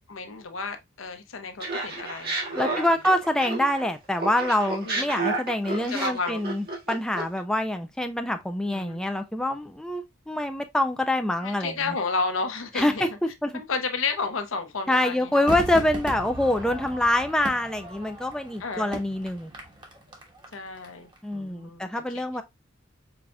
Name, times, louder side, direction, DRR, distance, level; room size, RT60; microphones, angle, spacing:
voice 1, 0.0-2.8 4.8-5.1 5.8-6.4 8.6-9.1 11.4-13.1 13.5-15.5 18.6-19.0 20.5-22.4, left 4 dB, 80° left, 0.8 m, -32 dB
Laughter, 1.6-3.9 4.2-7.4, right 3 dB, 55° right, 1.7 m, -31 dB
voice 2, 2.6-11.7 12.7-13.6 14.9-19.5 21.2-22.4, left 1 dB, 5° left, 0.4 m, -25 dB
Crowd / Fireworks, 15.5-20.9 21.1-21.2, right 1 dB, 25° right, 1.2 m, -37 dB
4.9 x 3.8 x 2.2 m
head